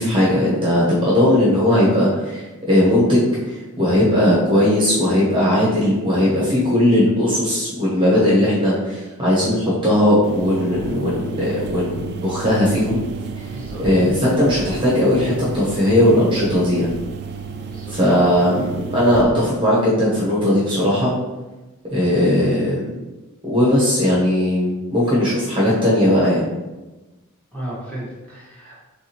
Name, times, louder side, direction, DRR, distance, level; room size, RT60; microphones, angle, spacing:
voice 1, 0.0-2.4 2.7-13.0 13.8-16.9 17.9-21.1 21.9-22.9 23.4-26.5, left 1 dB, 25° right, -7 dB, 1.0 m, -18 dB
sound 1, 10.2-19.2, right 5 dB, 50° right, 0.4 m, -32 dB
voice 2, 13.4-14.0 17.6-18.2 27.5-28.8, right 1 dB, 5° left, -8 dB, 1.3 m, -35 dB
4.7 x 3.4 x 3.0 m, 1.1 s
head